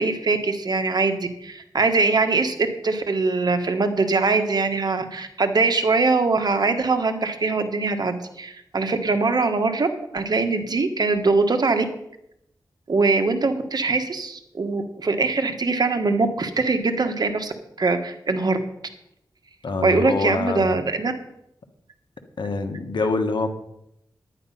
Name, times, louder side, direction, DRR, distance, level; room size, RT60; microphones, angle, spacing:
voice 1, 0.0-9.9 10.1-11.8 12.9-18.6 19.8-21.1, right 3 dB, 60° right, 7 dB, 1.4 m, -22 dB
voice 2, 19.6-20.8 22.4-23.5, left 3 dB, 75° left, 7 dB, 1.4 m, -25 dB
10.5 x 10.0 x 5.7 m, 0.79 s
cardioid pair, 65°, 8 cm